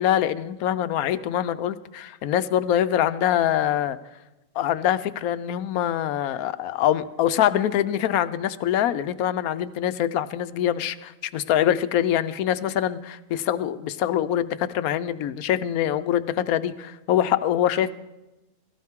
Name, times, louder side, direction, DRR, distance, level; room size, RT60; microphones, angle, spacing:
voice 1, 0.0-4.0 4.6-17.9, left 11 dB, 75° left, 13 dB, 1.1 m, -24 dB
17.5 x 16.0 x 3.6 m, 1.0 s
omnidirectional pair, 1.6 m